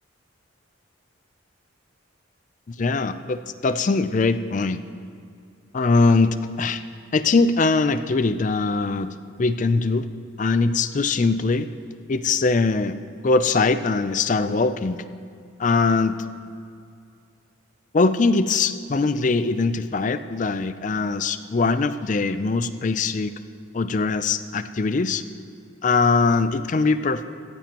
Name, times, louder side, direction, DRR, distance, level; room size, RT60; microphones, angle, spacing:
voice 1, 2.7-4.8 5.7-6.8 7.1-10.1 10.4-11.7 12.1-13.0 13.2-15.0 15.6-16.2 17.9-23.3 23.7-25.2 25.8-27.2, left 3 dB, 35° left, 12 dB, 0.4 m, -21 dB
16.5 x 14.5 x 3.0 m, 2.3 s
head